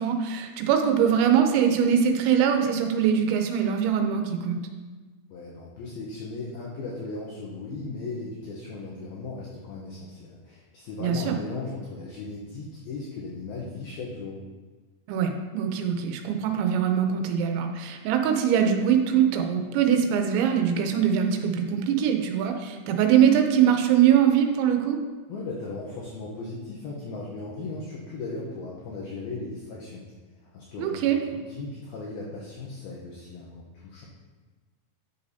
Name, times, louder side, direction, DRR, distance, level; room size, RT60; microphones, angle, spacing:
voice 1, 0.0-4.6 11.0-11.4 15.1-25.0 30.8-31.2, right 8 dB, 80° right, 5 dB, 2.9 m, -22 dB
voice 2, 5.3-14.4 25.3-30.0 30.5-31.0 31.5-34.1, left 3 dB, 75° left, -4 dB, 2.3 m, -37 dB
10.5 x 6.5 x 2.7 m, 1.3 s
omnidirectional pair, 5.4 m